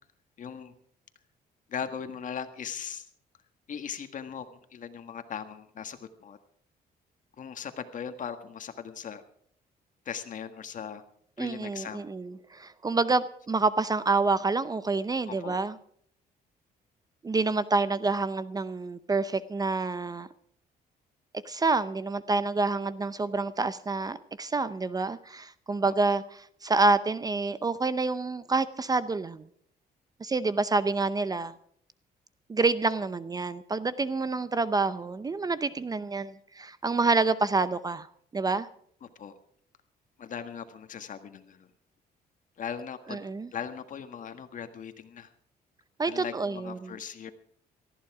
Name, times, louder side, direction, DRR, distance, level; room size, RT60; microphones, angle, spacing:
voice 1, 0.4-0.7 1.7-3.1 3.7-6.4 7.4-9.2 10.1-11.0 11.4-12.1 15.3-15.6 25.8-26.2 39.0-39.4 40.2-41.7 42.6-43.2 43.5-45.3 46.0-47.3, left 7 dB, 50° left, 8 dB, 1.7 m, -39 dB
voice 2, 11.4-15.8 17.2-20.3 21.4-26.2 26.6-29.4 30.2-31.5 32.5-38.1 38.3-38.7 43.1-43.5 46.0-46.9, right 3 dB, 20° right, 15 dB, 0.6 m, -27 dB
18.5 x 14.0 x 4.9 m, 0.63 s
cardioid pair, 120°, 17 cm